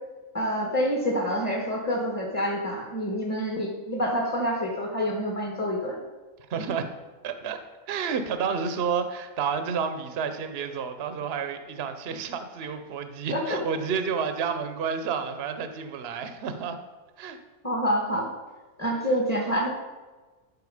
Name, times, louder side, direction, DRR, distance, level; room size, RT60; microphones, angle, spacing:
voice 1, 0.3-6.0 13.3-13.6 17.6-18.3 18.8-19.7, equal, 10° left, -2 dB, 1.1 m, -27 dB
voice 2, 6.5-6.9 7.2-7.6 7.9-16.8 17.2-17.4, right 6 dB, 50° right, 8 dB, 0.9 m, -30 dB
12.0 x 4.5 x 4.9 m, 1.2 s
omnidirectional pair, 1.6 m